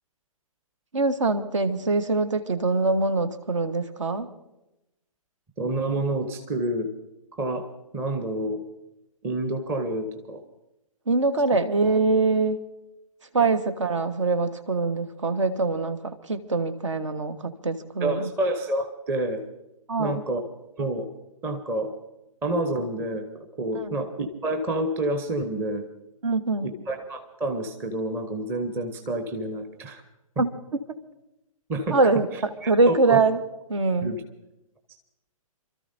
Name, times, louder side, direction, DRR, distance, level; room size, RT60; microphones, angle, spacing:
voice 1, 0.9-4.3 11.1-12.6 13.3-18.3 19.9-20.2 23.8-23.9 26.2-26.7 30.4-30.5 31.9-33.4 33.7-34.1, right 3 dB, 55° right, 11 dB, 1.4 m, -23 dB
voice 2, 5.6-6.9 7.3-8.6 9.2-10.4 13.4-13.5 18.0-19.4 20.0-20.5 20.8-21.1 21.4-21.9 22.4-23.3 23.6-25.8 26.6-30.0 31.7-33.2 34.0-34.2, right 1 dB, 10° right, 6 dB, 0.9 m, -28 dB
29.5 x 13.5 x 2.7 m, 0.90 s
figure-of-eight pair, 130°, 19 cm